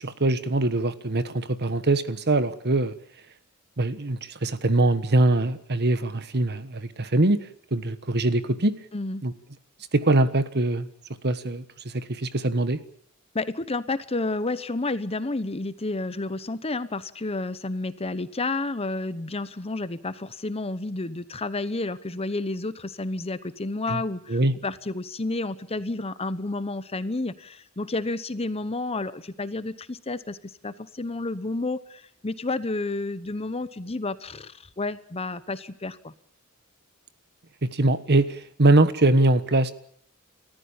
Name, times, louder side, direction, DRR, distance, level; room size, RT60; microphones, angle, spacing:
voice 1, 0.0-2.9 3.8-7.4 7.7-8.7 9.2-9.3 9.9-10.9 11.2-12.8 23.9-24.0 24.3-24.5 37.6-39.7, right 2 dB, 50° right, 13 dB, 1.4 m, -22 dB
voice 2, 8.9-9.2 13.3-36.1, left 2 dB, 30° left, 14 dB, 0.9 m, -30 dB
29.5 x 14.5 x 8.7 m, 0.64 s
head